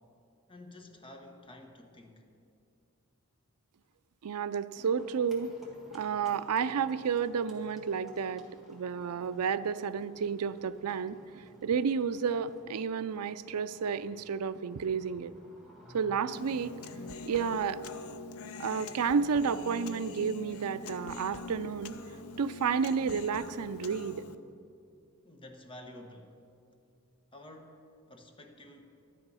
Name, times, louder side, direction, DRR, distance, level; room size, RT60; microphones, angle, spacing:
voice 1, 0.5-2.2 25.2-26.4 27.3-29.0, left 1 dB, 25° left, 4 dB, 1.0 m, -51 dB
voice 2, 4.2-5.5 5.9-15.3 15.9-16.8 17.3-17.8 18.6-22.0 22.4-24.2, right 6 dB, 85° right, 13 dB, 0.4 m, -31 dB
Livestock farm animals working animals, 4.7-17.5, equal, ahead, 1.8 m, -57 dB
Human voice, 16.3-24.4, left 3 dB, 65° left, 0.6 m, -44 dB
12.0 x 10.5 x 5.5 m, 2.4 s
head